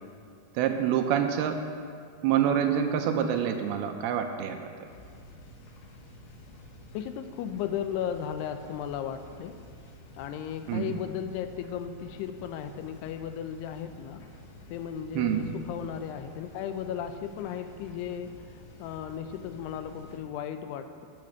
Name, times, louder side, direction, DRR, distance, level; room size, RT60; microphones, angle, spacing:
voice 1, 0.6-1.6 2.2-4.9 10.7-11.0 15.2-15.6, right 9 dB, 80° right, 5 dB, 2.4 m, -27 dB
sound 1, 4.8-20.2, left 1 dB, 65° left, 2.2 m, -50 dB
voice 2, 6.9-9.6 10.2-14.2 14.7-18.3 18.8-21.1, left 9 dB, 85° left, 8 dB, 2.6 m, -35 dB
10.5 x 7.6 x 7.1 m, 2.3 s
omnidirectional pair, 4.8 m